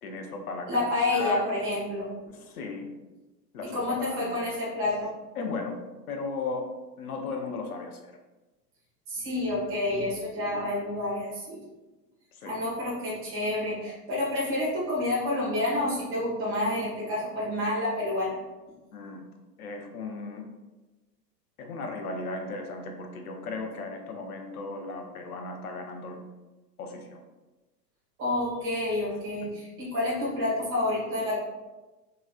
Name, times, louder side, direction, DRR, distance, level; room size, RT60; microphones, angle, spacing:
voice 1, 0.0-0.8 1.1-1.5 2.5-2.9 3.5-4.4 5.4-5.8 6.1-6.7 7.0-8.1 12.4-12.6 18.9-19.2 19.6-20.4 21.6-26.2 26.8-27.2 29.4-29.6, left 3 dB, 60° left, 3 dB, 0.7 m, -36 dB
voice 2, 0.7-2.1 3.7-5.1 9.1-11.6 12.4-18.4 28.2-31.4, left 2 dB, 25° right, -6 dB, 1.4 m, -29 dB
3.7 x 3.1 x 2.4 m, 1.1 s
figure-of-eight pair, 100°, 49 cm